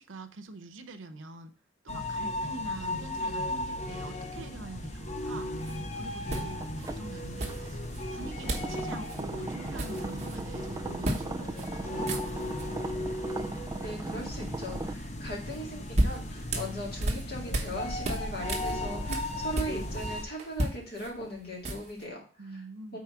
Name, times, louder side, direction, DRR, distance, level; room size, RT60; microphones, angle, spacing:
voice 1, 0.0-1.5 1.8-5.5 5.9-7.8 8.1-12.5 22.4-23.0, right 2 dB, 85° right, 8 dB, 0.7 m, -44 dB
sound 1, 1.9-20.2, left 1 dB, 35° left, 0.7 m, -36 dB
sound 2, 5.6-5.8 6.3-6.9 7.4-8.0 8.5-8.8 9.0-9.2 9.5-10.4 11.0-11.3 11.6-11.7 12.0-12.7 15.5-17.8 18.0-20.1 20.4-22.0, right 1 dB, 35° right, 1.0 m, -33 dB
sound 3, 6.6-14.9, right 2 dB, 20° right, 0.3 m, -39 dB
voice 2, 13.8-22.2 22.5-22.6 22.9-23.0, equal, 50° left, -1 dB, 2.2 m, -39 dB
4.7 x 4.2 x 5.7 m, 0.39 s
head